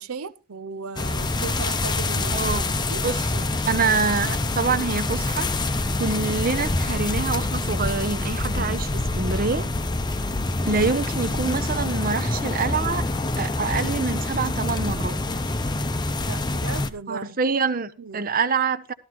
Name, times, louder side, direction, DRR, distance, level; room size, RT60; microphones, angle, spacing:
voice 1, 0.0-2.5 2.9-3.1 16.3-17.4 18.0-18.2, right 5 dB, 85° right, 0.6 m, -36 dB
sound 1, 1.0-16.9, left 2 dB, 20° left, 0.7 m, -26 dB
voice 2, 2.3-2.8 3.0-5.5 6.0-9.7 10.6-13.0 13.4-15.2 17.1-18.9, right 4 dB, 40° right, 0.7 m, -26 dB
13.5 x 13.0 x 3.0 m
head